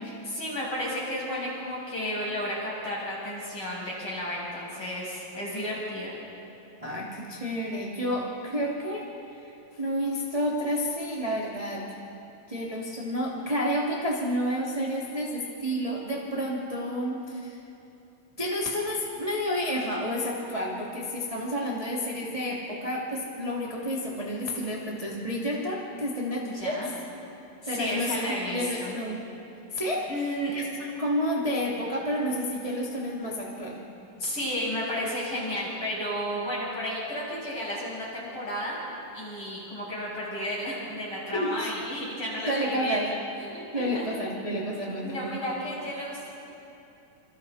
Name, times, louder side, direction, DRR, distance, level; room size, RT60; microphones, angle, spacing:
voice 1, 0.2-6.2 8.5-8.6 26.4-26.9 27.6-28.9 30.1-30.6 34.2-38.8 39.1-44.1 45.0-46.3, equal, 35° left, -6 dB, 8.1 m, -33 dB
voice 2, 6.8-12.0 12.5-17.6 18.4-26.7 27.7-28.2 28.5-29.2 29.7-33.8 41.3-41.7 42.5-43.0 43.7-45.3, equal, 10° right, -5 dB, 2.1 m, -30 dB
29.0 x 27.5 x 4.2 m, 2.8 s
omnidirectional pair, 4.0 m